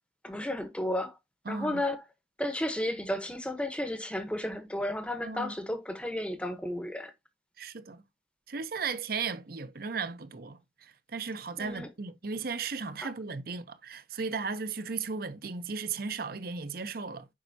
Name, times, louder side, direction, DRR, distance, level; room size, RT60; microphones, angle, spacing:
voice 1, 0.2-1.2 1.5-2.0 2.4-7.1 11.6-11.9 13.0-13.1, left 1 dB, 5° left, 0.8 m, -33 dB
voice 2, 1.5-1.8 5.2-5.5 7.6-8.0 8.5-17.3, right 5 dB, 50° right, 0.7 m, -36 dB
7.5 x 5.3 x 2.7 m
head